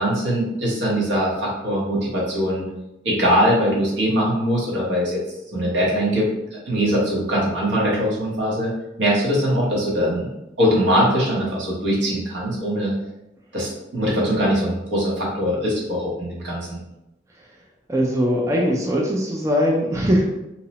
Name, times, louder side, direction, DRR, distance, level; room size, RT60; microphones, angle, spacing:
voice 1, 0.0-2.7 3.0-5.2 5.5-8.7 9.0-12.9 13.5-16.8, equal, 80° right, -5 dB, 1.0 m, -22 dB
voice 2, 17.9-20.2, equal, 15° right, -2 dB, 0.3 m, -20 dB
2.7 x 2.0 x 2.8 m, 0.92 s
head